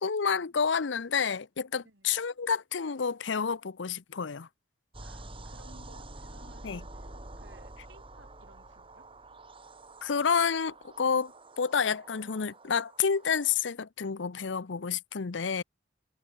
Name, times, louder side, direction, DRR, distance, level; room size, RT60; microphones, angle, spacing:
voice 1, 0.0-4.5 6.6-6.8 10.0-15.6, left 6 dB, 85° left, 0.7 m, -29 dB
voice 2, 1.8-2.2 5.0-9.1, right 2 dB, 80° right, 5.6 m, -58 dB
sound 1, 4.9-13.6, right 2 dB, 30° right, 4.0 m, -48 dB
head